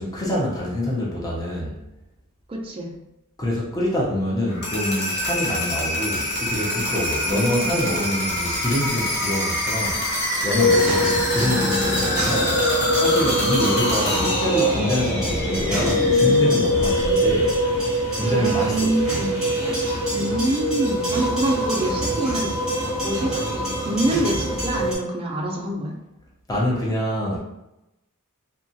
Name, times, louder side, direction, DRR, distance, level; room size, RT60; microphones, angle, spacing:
voice 1, 0.0-1.8 3.4-10.0 10.4-12.6 13.0-17.5 18.1-19.1 26.5-27.4, left 1 dB, 15° left, -4 dB, 0.6 m, -26 dB
voice 2, 2.5-3.0 7.3-7.8 10.8-12.1 18.2-19.3 20.1-22.5 23.0-26.0, right 1 dB, 25° right, 0 dB, 0.4 m, -26 dB
sound 1, 4.5-18.3, left 1 dB, 50° left, 0.7 m, -26 dB
sound 2, 10.5-25.0, equal, 5° right, 1.0 m, -23 dB
2.8 x 2.3 x 2.6 m, 0.90 s
head